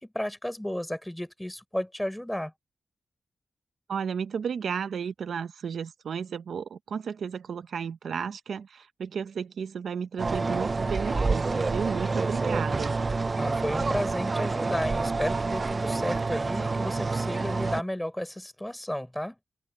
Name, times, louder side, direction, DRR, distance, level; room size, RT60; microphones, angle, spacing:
voice 1, 0.0-2.5 13.4-19.4, left 1 dB, 10° left, 5.5 m, -33 dB
voice 2, 3.9-13.0, right 7 dB, 80° right, 0.9 m, -33 dB
sound 1, 10.2-17.8, right 3 dB, 45° right, 0.4 m, -28 dB
cardioid pair, 45°, 0 cm